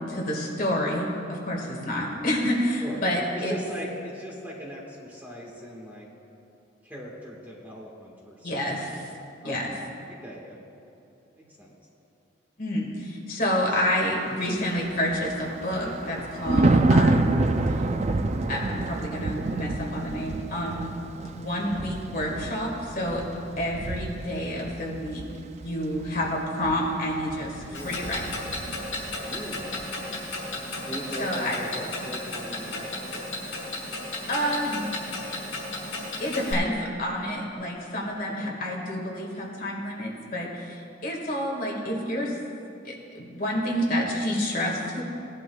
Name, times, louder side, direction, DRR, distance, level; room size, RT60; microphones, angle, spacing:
voice 1, 0.0-3.6 8.4-9.1 9.4-9.7 12.6-17.4 18.5-20.9 21.3-23.2 23.6-25.2 25.6-28.3 31.2-31.6 34.3-34.9 35.3-35.4 36.2-42.4 42.8-45.0, equal, 45° left, -2 dB, 1.8 m, -29 dB
voice 2, 3.3-6.1 6.8-8.9 9.4-9.8 10.1-10.6 11.4-11.7 27.7-28.1 29.2-29.8 30.9-33.2 33.9-34.0 34.2-34.4 38.2-38.6, equal, 10° right, -4 dB, 1.5 m, -40 dB
Thunder, 14.7-29.3 29.6-29.8, right 2 dB, 35° right, 0.4 m, -28 dB
Clock, 27.7-36.5, left 2 dB, 75° left, 3.0 m, -34 dB
18.5 x 11.0 x 2.3 m, 2.6 s
head